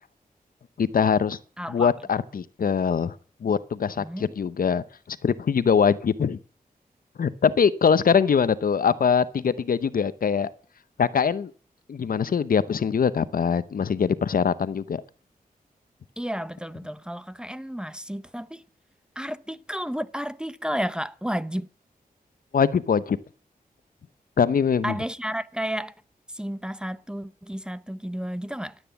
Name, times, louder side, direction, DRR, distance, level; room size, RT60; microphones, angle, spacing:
voice 1, 0.8-1.4 1.7-3.1 3.4-6.4 7.2-10.5 11.0-11.5 11.9-15.0 22.5-23.2 24.4-24.9, left 6 dB, 70° left, 0.8 m, -23 dB
voice 2, 1.6-1.9 4.0-4.3 16.2-18.6 19.2-21.7 24.8-25.9 26.3-28.8, equal, 5° right, 0.7 m, -32 dB
14.0 x 9.2 x 7.1 m
wide cardioid pair, 90°, 15 cm